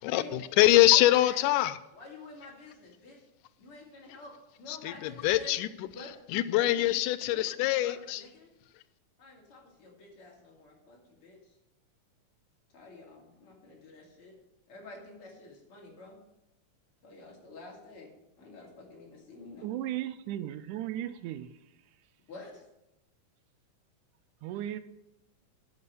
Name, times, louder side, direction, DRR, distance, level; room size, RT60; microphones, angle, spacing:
voice 1, 0.0-1.8 4.7-5.9 6.3-8.2, left 15 dB, 90° left, 2.1 m, -24 dB
voice 2, 0.9-1.6 1.9-3.2 3.6-4.3 4.6-6.9 7.3-7.5 7.8-8.5 9.2-11.5 12.7-14.4 14.7-16.2 17.0-19.7 22.3-22.6, left 2 dB, 45° left, 3.4 m, -49 dB
voice 3, 19.6-21.5 24.4-24.8, right 12 dB, 80° right, 2.0 m, -35 dB
9.6 x 7.0 x 7.0 m
omnidirectional pair, 3.6 m